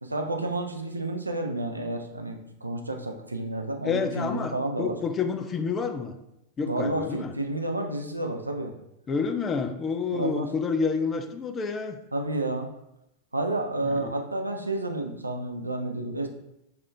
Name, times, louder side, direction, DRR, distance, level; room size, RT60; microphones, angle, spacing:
voice 1, 0.0-5.0 6.7-8.7 10.1-10.5 12.1-12.7 13.3-16.3, right 2 dB, 85° right, 3 dB, 0.4 m, -30 dB
voice 2, 3.8-6.1 6.6-7.3 9.1-12.0 13.8-14.1, left 5 dB, 25° left, 8 dB, 0.4 m, -29 dB
5.5 x 2.4 x 3.3 m, 0.86 s
figure-of-eight pair, 90°, 0 cm